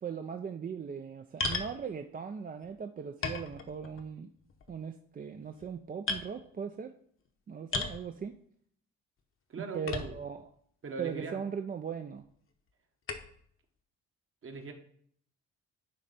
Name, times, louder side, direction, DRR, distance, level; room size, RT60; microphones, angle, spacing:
voice 1, 0.0-4.3 4.7-6.9 7.5-8.4 9.7-10.5 11.0-12.2, right 7 dB, 30° right, 6 dB, 0.4 m, -39 dB
sound 1, 1.4-1.7 2.6-2.7 3.2-4.0 4.4-4.8 5.4-5.7 6.1-6.3 7.7-8.0 9.9-10.4 11.1-11.2 13.1-13.4, left 3 dB, 45° left, 0.9 m, -35 dB
voice 2, 9.5-10.2 10.8-11.4 14.4-14.7, right 4 dB, 45° right, 5 dB, 1.2 m, -40 dB
9.6 x 3.3 x 4.1 m, 0.63 s
cardioid pair, 90°, 30 cm